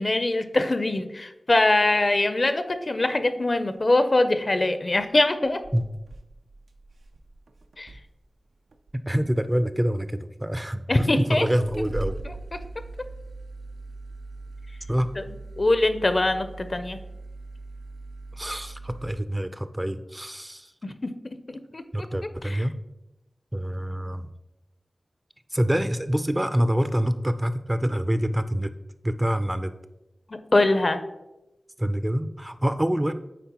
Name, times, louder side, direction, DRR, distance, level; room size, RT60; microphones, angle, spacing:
voice 1, 0.0-5.6 7.8-7.9 10.9-11.5 15.2-15.3 15.6-17.0 20.8-21.1 21.5-21.8 30.5-31.0, left 2 dB, 50° left, 10 dB, 0.5 m, -23 dB
sound 1, 4.3-4.5 5.0-5.1 5.5-8.2 8.7-9.1 10.0-10.1 11.0-11.1 11.5-19.1, right 2 dB, 85° right, 0.4 m, -40 dB
voice 2, 9.1-12.2 14.9-15.1 18.3-20.7 21.9-22.8 23.5-24.3 25.5-28.7 29.0-29.7 31.8-33.1, equal, 15° right, 11 dB, 0.4 m, -26 dB
9.2 x 3.9 x 2.9 m, 0.95 s
cardioid pair, 45°, 0 cm